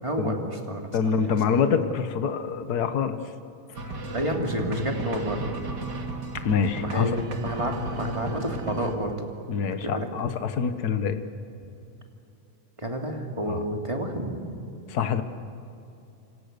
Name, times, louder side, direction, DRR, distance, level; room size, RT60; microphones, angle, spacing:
voice 1, 0.0-1.3 4.1-5.5 6.8-9.1 9.7-10.1 12.8-14.4, equal, 10° right, 2 dB, 2.5 m, -30 dB
voice 2, 0.9-3.2 3.8-3.9 6.4-7.2 9.5-11.3 13.5-13.6 14.9-15.2, left 6 dB, 50° left, 9 dB, 1.2 m, -25 dB
sound 1, 3.7-9.0, right 2 dB, 35° right, 2.4 m, -34 dB
29.5 x 26.0 x 6.9 m, 2.8 s
omnidirectional pair, 3.4 m